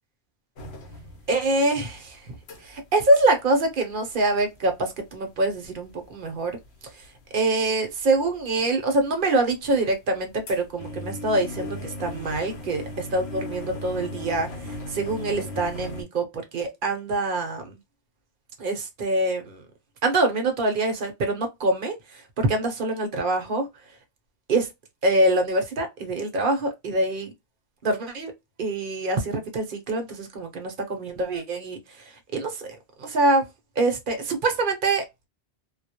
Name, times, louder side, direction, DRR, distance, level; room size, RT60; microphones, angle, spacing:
sound 1, 0.6-1.5 1.8-2.9 3.2-3.3 3.6-4.1 4.6-6.2 6.5-7.3 7.9-8.6 9.0-16.0, left 1 dB, 70° left, 0.8 m, -37 dB
voice 1, 1.3-2.3 2.6-6.6 6.9-7.1 7.3-17.8 18.6-19.6 20.0-23.7 24.5-24.7 25.0-27.3 27.8-28.3 28.6-32.7 33.0-33.5 33.8-35.0, right 2 dB, 55° right, 0.8 m, -25 dB
2.3 x 2.0 x 2.7 m
omnidirectional pair, 1.2 m